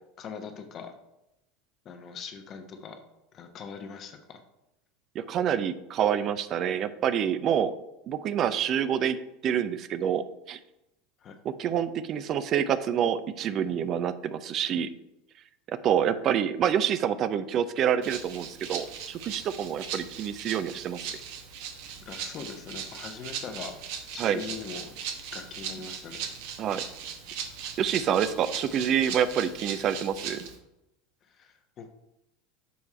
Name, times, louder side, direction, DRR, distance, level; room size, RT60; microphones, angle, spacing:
voice 1, 0.2-0.9 1.8-3.0 3.3-4.4 11.2-11.3 22.0-24.9 25.3-26.3 26.7-26.9 31.2-31.9, left 6 dB, 40° left, 6 dB, 1.1 m, -41 dB
voice 2, 5.1-7.7 8.1-9.2 9.4-10.6 11.4-14.9 15.7-21.1 24.2-24.4 26.6-26.8 27.8-30.5, right 9 dB, 45° right, 13 dB, 0.5 m, -27 dB
Rattle (instrument), 18.0-30.6, right 7 dB, 60° right, 1.0 m, -39 dB
7.0 x 4.7 x 4.3 m, 0.90 s
hypercardioid pair, 80°, 0 cm